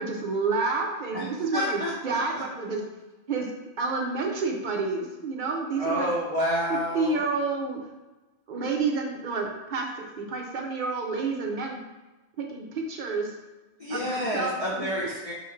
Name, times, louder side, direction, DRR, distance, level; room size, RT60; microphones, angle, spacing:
voice 1, 0.0-2.8 3.3-3.5 3.8-6.1 6.9-7.8 8.5-9.9 10.2-11.8 12.4-13.3 13.9-14.9, right 4 dB, 55° right, 1 dB, 0.6 m, -29 dB
voice 2, 1.5-2.2 5.8-7.2 13.8-15.3, equal, 40° left, -7 dB, 0.6 m, -29 dB
2.9 x 2.5 x 4.2 m, 1.1 s
omnidirectional pair, 1.2 m